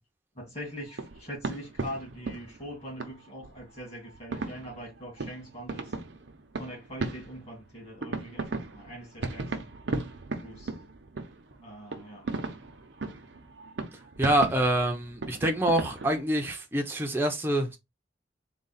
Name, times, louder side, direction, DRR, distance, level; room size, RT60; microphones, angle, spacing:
voice 1, 0.4-5.9 6.6-9.7 10.4-10.7 11.6-12.3, equal, 35° left, 2.1 m, -42 dB
sound 1, 0.6-16.2, right 3 dB, 75° right, 0.7 m, -37 dB
voice 2, 14.2-17.8, right 1 dB, 15° right, 0.6 m, -26 dB
3.9 x 2.3 x 4.0 m
head